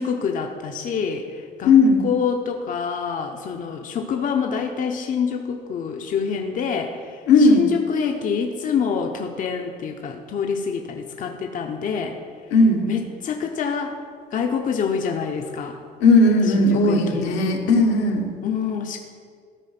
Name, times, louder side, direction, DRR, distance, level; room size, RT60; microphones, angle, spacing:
voice 1, 0.0-1.7 2.0-12.2 12.9-14.0 14.3-15.8 16.5-17.3 18.4-19.0, left 6 dB, 50° left, 3 dB, 0.8 m, -26 dB
voice 2, 1.6-2.0 7.3-7.7 12.5-12.8 16.0-18.2, left 2 dB, 85° left, 1 dB, 1.3 m, -16 dB
13.5 x 4.6 x 5.9 m, 2.1 s
cardioid pair, 110°, 17 cm